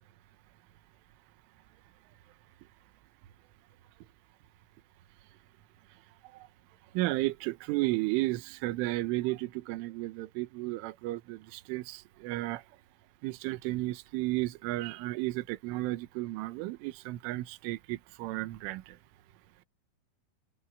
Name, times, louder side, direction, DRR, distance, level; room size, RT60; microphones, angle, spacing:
voice 1, 7.0-12.6 13.2-19.0, right 19 dB, 75° right, 3.5 m, -33 dB
open air
omnidirectional pair, 5.9 m